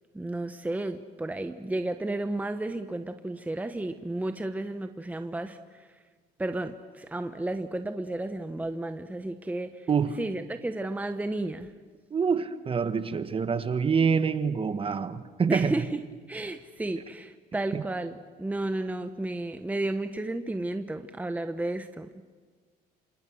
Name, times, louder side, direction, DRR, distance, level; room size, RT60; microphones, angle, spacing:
voice 1, 0.1-5.9 6.4-9.9 10.2-11.7 15.5-16.0 16.3-22.2, right 2 dB, 10° right, 1.1 m, -32 dB
voice 2, 9.9-10.2 12.1-15.8 17.7-17.8, right 6 dB, 35° right, 1.5 m, -26 dB
29.0 x 26.5 x 6.4 m
cardioid pair, 110°, 17 cm